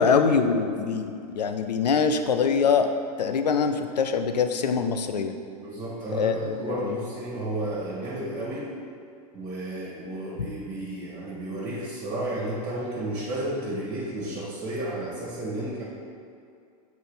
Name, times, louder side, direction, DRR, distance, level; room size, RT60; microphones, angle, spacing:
voice 1, 0.0-2.9 3.2-5.3 6.1-7.0, left 5 dB, 90° left, 7 dB, 0.6 m, -24 dB
voice 2, 5.6-8.7 9.3-15.8, right 1 dB, 35° right, -6 dB, 1.7 m, -32 dB
6.6 x 4.1 x 5.5 m, 2.4 s
hypercardioid pair, 100°, 21 cm